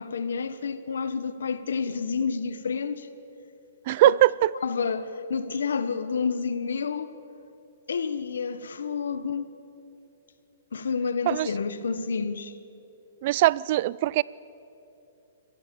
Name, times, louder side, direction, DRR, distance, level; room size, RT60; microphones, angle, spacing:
voice 1, 0.0-3.1 3.9-4.2 4.6-7.1 7.9-9.5 10.7-12.5, left 5 dB, 85° left, 1.4 m, -29 dB
voice 2, 3.9-4.5 11.3-11.5 13.2-14.2, right 16 dB, 45° right, 0.4 m, -21 dB
25.5 x 18.5 x 7.1 m
hypercardioid pair, 150°, 0 cm